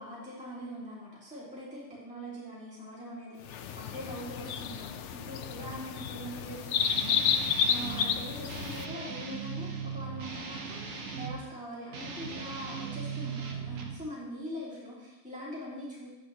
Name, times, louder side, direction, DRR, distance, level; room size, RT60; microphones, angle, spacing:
voice 1, 0.0-16.1, equal, 5° right, -8 dB, 2.5 m, -42 dB
sound 1, 3.5-8.8, left 7 dB, 70° left, 0.9 m, -31 dB
Guitar, 6.8-8.1 8.5-11.4 11.9-14.0, right 5 dB, 90° right, 1.5 m, -38 dB
12.0 x 8.2 x 3.0 m, 1.1 s
omnidirectional pair, 1.3 m